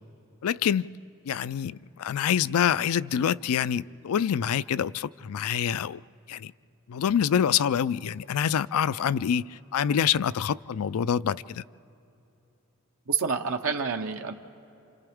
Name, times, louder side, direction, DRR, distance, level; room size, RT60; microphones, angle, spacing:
voice 1, 0.4-0.9 1.3-6.0 6.3-6.5 6.9-11.6, left 8 dB, 80° left, 18 dB, 0.4 m, -26 dB
voice 2, 13.1-14.3, right 5 dB, 70° right, 4 dB, 0.8 m, -28 dB
29.5 x 27.0 x 3.6 m, 2.9 s
head